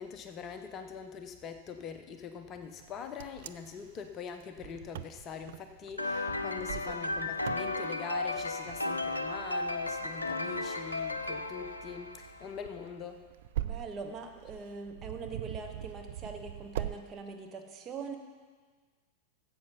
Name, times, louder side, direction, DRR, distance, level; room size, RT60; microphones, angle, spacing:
voice 1, 0.0-13.3, left 6 dB, 30° left, 8 dB, 0.7 m, -43 dB
Wind, 2.8-17.0, right 13 dB, 55° right, 0.4 m, -43 dB
sound 1, 6.0-12.6, left 2 dB, 80° left, 0.5 m, -34 dB
voice 2, 13.6-18.2, right 4 dB, 25° right, 4 dB, 1.5 m, -42 dB
14.5 x 7.8 x 5.6 m, 1.5 s
figure-of-eight pair, 90°, 0 cm